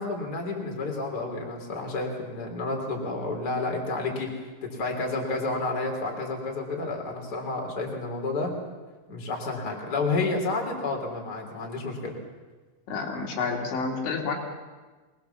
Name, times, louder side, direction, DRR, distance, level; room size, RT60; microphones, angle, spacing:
voice 1, 0.0-8.5 9.1-12.1, left 3 dB, 20° left, 1 dB, 3.4 m, -30 dB
voice 2, 12.9-14.4, left 4 dB, 70° left, 0 dB, 4.6 m, -29 dB
24.0 x 20.0 x 7.2 m, 1.3 s
omnidirectional pair, 5.6 m